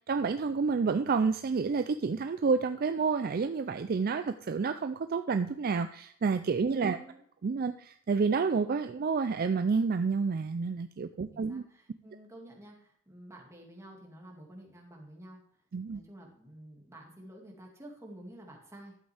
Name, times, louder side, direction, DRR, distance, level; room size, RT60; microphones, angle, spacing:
voice 1, 0.1-7.0 7.4-11.6 15.7-16.0, right 5 dB, 45° right, 9 dB, 0.4 m, -29 dB
voice 2, 6.7-7.2 11.3-15.4 15.9-18.9, right 1 dB, 15° right, -1 dB, 2.2 m, -50 dB
12.0 x 7.9 x 3.4 m, 0.65 s
head